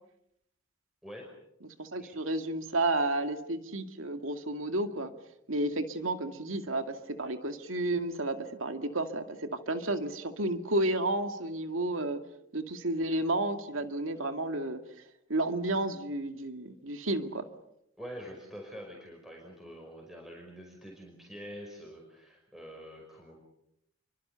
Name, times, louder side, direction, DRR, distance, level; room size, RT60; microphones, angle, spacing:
voice 1, 1.8-5.1 5.5-12.2 12.5-14.8 15.3-17.5, right 2 dB, 75° right, 7 dB, 2.2 m, -31 dB
voice 2, 18.0-23.4, equal, ahead, -1 dB, 5.4 m, -46 dB
29.0 x 24.5 x 7.0 m, 0.79 s
head